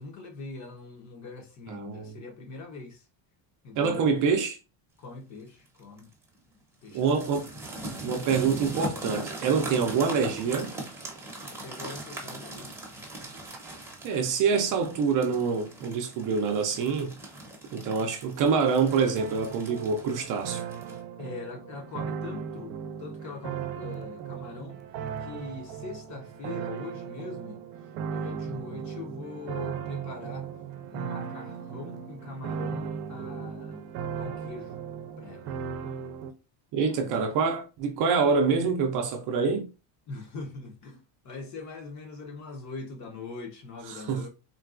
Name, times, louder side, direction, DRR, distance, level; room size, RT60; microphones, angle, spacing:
voice 1, 0.0-3.1 3.6-4.2 5.0-6.1 6.8-7.6 11.5-12.8 18.0-18.3 21.2-24.8 25.2-27.6 28.1-30.5 30.9-33.8 34.1-34.8 35.2-35.6 36.9-37.2 40.1-44.3, left 4 dB, 35° left, 0.7 m, -42 dB
voice 2, 1.7-2.2 3.8-4.6 6.9-7.5 8.0-10.7 14.0-17.2 17.7-20.6 36.7-39.7 43.9-44.3, right 5 dB, 40° right, 0.5 m, -26 dB
sound 1, 5.7-6.0 6.9-21.0, right 1 dB, 5° right, 0.7 m, -40 dB
sound 2, 19.2-36.3, right 7 dB, 80° right, 0.6 m, -37 dB
3.8 x 2.2 x 2.3 m
cardioid pair, 150°, 50 cm